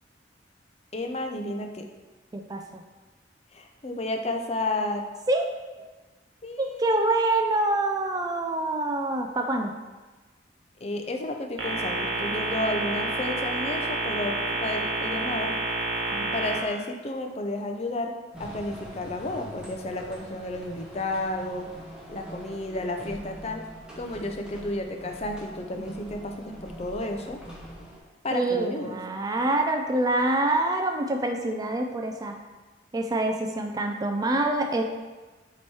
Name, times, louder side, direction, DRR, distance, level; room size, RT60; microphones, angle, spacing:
voice 1, 0.9-1.8 3.5-5.0 6.4-7.1 10.8-14.4 14.6-15.5 16.3-18.1 18.4-21.7 22.1-23.6 24.0-27.4 28.2-29.0, left 2 dB, 35° left, 4 dB, 0.5 m, -32 dB
voice 2, 2.3-2.8 5.3-5.5 6.6-9.7 16.1-16.3 28.3-32.4 32.9-34.8, right 2 dB, 20° right, 3 dB, 0.3 m, -26 dB
sound 1, 11.6-16.6, right 2 dB, 85° right, 1.3 m, -29 dB
roller shutter, 18.3-28.0, equal, 5° right, 1.0 m, -44 dB
7.1 x 3.0 x 4.6 m, 1.2 s
head